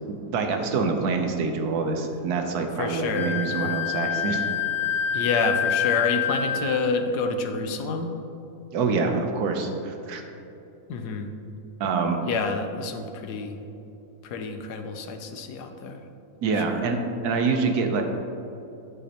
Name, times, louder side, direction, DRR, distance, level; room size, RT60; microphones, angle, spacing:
voice 1, 0.1-4.4 8.7-10.2 11.8-12.2 16.4-18.0, right 4 dB, 75° right, 4 dB, 1.3 m, -26 dB
voice 2, 2.8-3.3 5.1-8.1 10.9-11.3 12.2-13.6 14.2-16.0 16.6-16.8, left 4 dB, 85° left, 6 dB, 1.3 m, -28 dB
Wind instrument woodwind instrument, 3.1-6.8, left 8 dB, 40° left, 0.6 m, -27 dB
9.6 x 8.2 x 2.9 m, 2.9 s
omnidirectional pair, 1.7 m